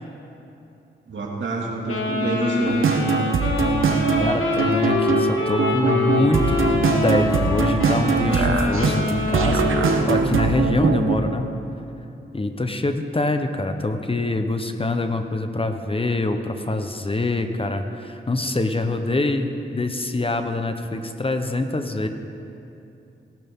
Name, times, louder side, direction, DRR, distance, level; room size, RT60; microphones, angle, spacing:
voice 1, 1.1-2.8, right 3 dB, 65° right, -1 dB, 2.3 m, -28 dB
Wind instrument woodwind instrument, 1.9-10.4, left 2 dB, 85° left, 2.0 m, -25 dB
sound 1, 2.7-11.2, right 5 dB, 85° right, 1.0 m, -22 dB
voice 2, 4.2-6.6 7.0-9.7 10.0-11.5 12.3-22.1, left 2 dB, 25° left, 7 dB, 0.9 m, -25 dB
18.5 x 12.0 x 3.7 m, 2.8 s
cardioid pair, 65°, 21 cm